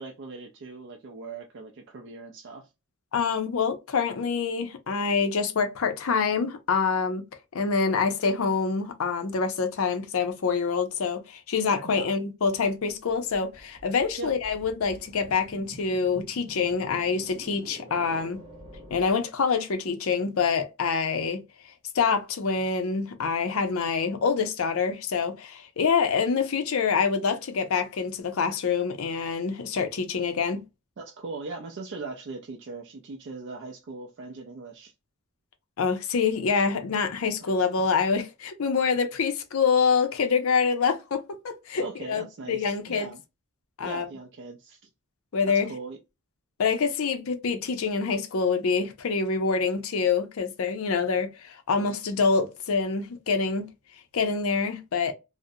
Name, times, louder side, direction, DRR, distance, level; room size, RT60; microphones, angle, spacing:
voice 1, 0.0-2.7 11.8-12.1 14.2-14.3 31.0-34.9 37.4-37.5 41.8-43.2 43.8-44.8 45.4-46.0, right 3 dB, 50° right, 0.4 m, -40 dB
voice 2, 3.1-7.2 7.5-18.4 18.9-21.4 21.9-30.6 35.8-43.1 43.8-44.1 45.3-45.7 46.6-53.7 54.1-55.1, left 5 dB, 65° left, 0.5 m, -26 dB
sound 1, 12.4-19.1, right 1 dB, 20° right, 0.8 m, -48 dB
2.5 x 2.0 x 2.5 m
head